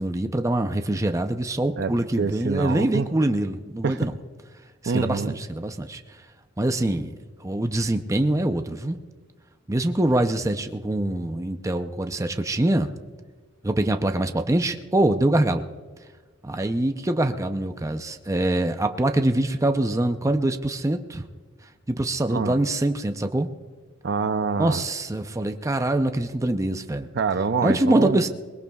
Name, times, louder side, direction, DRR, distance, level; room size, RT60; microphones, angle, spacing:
voice 1, 0.0-4.1 4.8-6.0 6.6-7.1 7.4-9.0 9.7-12.9 13.6-15.7 16.4-21.3 21.9-23.5 24.6-27.1 27.6-28.3, right 1 dB, 15° right, 7 dB, 0.6 m, -24 dB
voice 2, 1.8-3.1 3.8-4.1 4.9-5.4 22.3-22.6 24.0-24.8 27.1-28.2, right 5 dB, 60° right, 11 dB, 0.6 m, -26 dB
22.0 x 20.5 x 2.3 m, 1.4 s
head